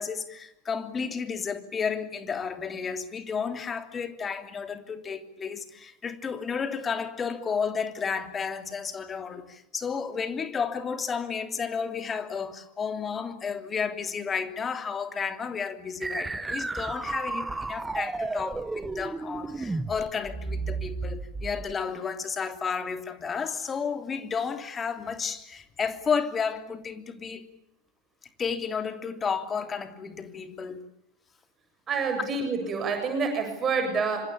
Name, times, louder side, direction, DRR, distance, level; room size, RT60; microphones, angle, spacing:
voice 1, 0.0-27.5 28.4-30.9, left 6 dB, 20° left, 3.1 m, -32 dB
sound 1, 16.0-21.7, right 3 dB, 10° right, 1.6 m, -33 dB
voice 2, 31.9-34.3, right 4 dB, 25° right, 7.6 m, -27 dB
26.0 x 26.0 x 8.7 m
figure-of-eight pair, 85°, 0 cm